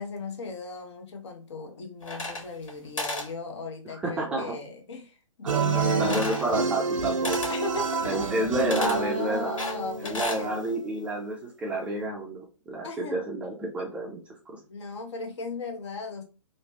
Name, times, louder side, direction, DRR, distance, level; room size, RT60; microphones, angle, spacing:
voice 1, 0.0-6.4 7.5-10.5 12.8-13.2 14.7-16.2, left 4 dB, 55° left, 0.8 m, -36 dB
sound 1, 2.0-2.7 3.0-3.3 6.0-6.5 7.2-7.6 8.7-9.0 9.6-10.4, left 2 dB, 75° left, 1.5 m, -33 dB
voice 2, 3.8-4.6 5.4-7.4 8.0-9.6 10.0-14.2 14.5-14.6, right 1 dB, 5° right, 0.4 m, -30 dB
sound 2, 5.5-10.7, right 5 dB, 75° right, 0.6 m, -29 dB
3.1 x 2.1 x 2.8 m
hypercardioid pair, 135°, 17 cm